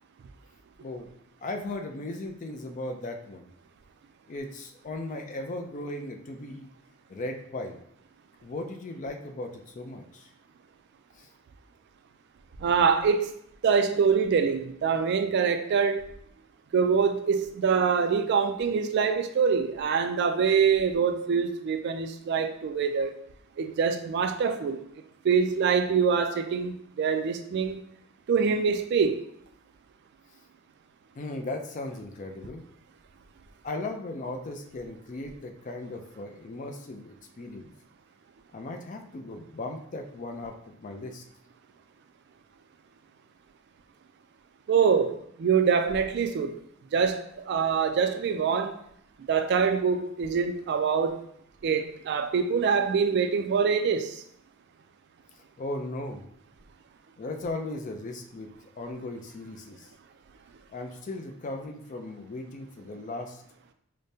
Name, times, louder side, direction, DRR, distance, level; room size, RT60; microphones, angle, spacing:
voice 1, 0.8-1.1 1.4-3.5 4.3-6.7 7.1-7.8 8.4-10.3 11.1-11.3 31.2-32.6 33.6-37.7 38.5-41.2 55.6-56.3 57.2-58.5 58.8-59.9 60.7-63.4, left 2 dB, 40° left, 0.4 m, -37 dB
voice 2, 12.6-13.3 13.6-16.0 16.7-23.1 23.6-24.8 25.2-27.8 28.3-29.2 44.7-46.6 46.9-48.8 49.3-51.2 51.6-54.2, right 6 dB, 55° right, 0.3 m, -25 dB
4.9 x 2.1 x 2.7 m
head